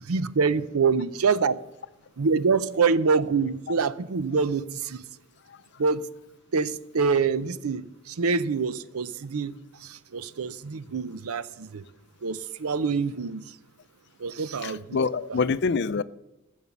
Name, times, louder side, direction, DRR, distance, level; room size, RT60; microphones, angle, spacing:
voice 1, 0.1-1.6 2.2-5.0 5.8-6.1 6.5-11.8 12.2-13.4 14.2-15.0, right 5 dB, 90° right, 0.6 m, -26 dB
voice 2, 14.6-16.0, left 4 dB, 50° left, 0.4 m, -26 dB
16.0 x 7.2 x 7.2 m
head